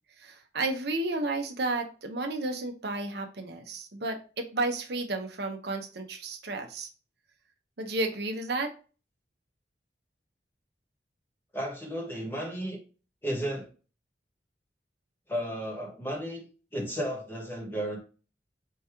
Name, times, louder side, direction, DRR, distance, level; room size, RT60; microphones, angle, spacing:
voice 1, 0.2-6.9 7.8-8.7, right 2 dB, 60° right, 4 dB, 0.7 m, -32 dB
voice 2, 11.5-12.8 13.2-13.7 15.3-16.5 16.7-18.0, equal, 10° left, 0 dB, 1.3 m, -33 dB
4.6 x 2.9 x 3.4 m, 0.35 s
head